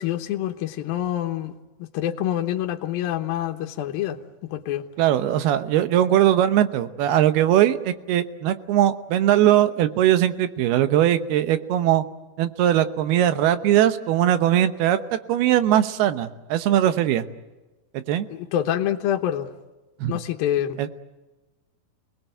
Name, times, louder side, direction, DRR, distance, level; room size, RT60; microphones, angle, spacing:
voice 1, 0.0-1.5 1.8-4.2 4.5-4.9 18.3-19.5 20.1-20.9, left 11 dB, 75° left, 4 dB, 2.8 m, -26 dB
voice 2, 5.0-12.0 12.4-15.0 15.3-17.2 17.9-18.3 20.0-20.1 20.8-20.9, right 11 dB, 90° right, 11 dB, 3.0 m, -20 dB
28.5 x 19.5 x 9.1 m, 1.1 s
omnidirectional pair, 4.4 m